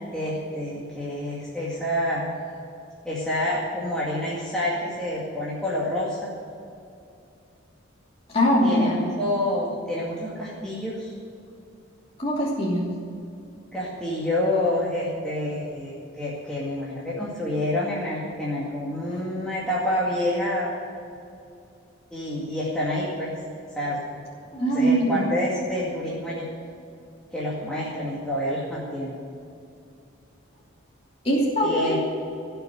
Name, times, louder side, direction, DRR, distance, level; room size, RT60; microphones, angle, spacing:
voice 1, 0.1-2.3 3.0-6.3 8.6-11.1 13.7-20.7 22.1-23.3 23.7-24.1 24.7-26.4 27.3-29.1 31.6-32.0, left 1 dB, 5° left, -8 dB, 2.2 m, -28 dB
voice 2, 8.3-9.1 12.2-12.9 19.1-19.2 24.5-25.3 31.2-32.0, equal, 30° left, -5 dB, 2.8 m, -22 dB
17.0 x 7.0 x 9.3 m, 2.5 s
head